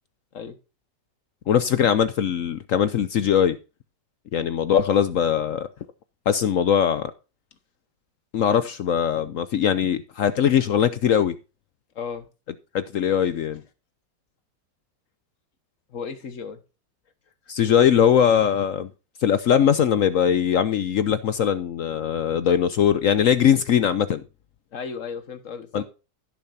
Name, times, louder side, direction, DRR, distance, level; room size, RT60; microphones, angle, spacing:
voice 1, 1.5-3.6 4.3-5.7 6.3-7.1 8.3-11.3 12.7-13.6 17.5-18.9 19.2-24.2 25.7-25.8, left 8 dB, 65° left, 0.8 m, -21 dB
voice 2, 11.9-12.3 15.9-16.6 24.7-25.8, left 6 dB, 50° left, 1.6 m, -34 dB
16.5 x 7.0 x 2.7 m
omnidirectional pair, 1.9 m